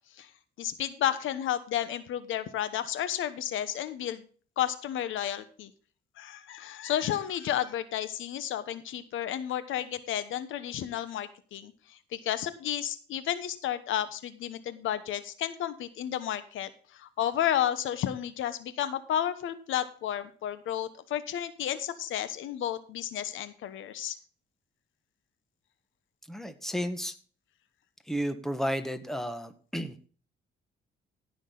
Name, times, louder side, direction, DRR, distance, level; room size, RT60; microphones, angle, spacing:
voice 1, 0.6-4.3 4.6-5.7 6.2-24.2, left 11 dB, 80° left, 13 dB, 1.1 m, -32 dB
voice 2, 26.3-27.1 28.1-30.1, equal, ahead, 9 dB, 1.6 m, -32 dB
16.5 x 6.4 x 3.9 m, 0.41 s
cardioid pair, 90°, 20 cm